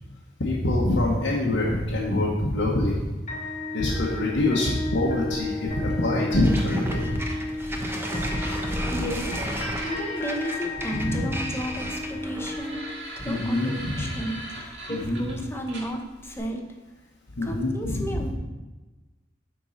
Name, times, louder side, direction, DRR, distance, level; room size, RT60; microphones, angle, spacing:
voice 1, 0.4-3.1 3.7-7.2 10.9-11.3 13.3-14.1 14.9-15.2 17.4-18.3, left 1 dB, 85° left, -5 dB, 1.3 m, -25 dB
sound 1, 3.3-13.3, left 2 dB, 40° left, 1.3 m, -34 dB
sound 2, 5.6-16.4, right 1 dB, 70° right, 2.1 m, -42 dB
sound 3, 6.4-12.7, equal, 15° right, 0.8 m, -32 dB
voice 2, 8.9-9.4 9.8-12.9 13.2-16.6 17.4-18.3, equal, 15° left, 3 dB, 0.9 m, -33 dB
9.9 x 4.6 x 4.2 m, 1.2 s
head